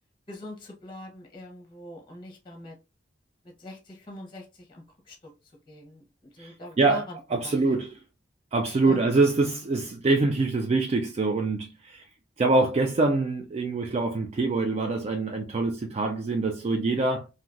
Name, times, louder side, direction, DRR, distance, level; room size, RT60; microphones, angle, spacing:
voice 1, 0.3-2.8 3.4-5.3 5.7-7.2 7.4-7.8 8.9-9.1, equal, 25° left, 0.7 m, -42 dB
voice 2, 6.4-7.0 7.3-8.0 8.5-12.0 12.4-17.3, right 3 dB, 35° right, 0.3 m, -25 dB
3.2 x 2.6 x 2.4 m
head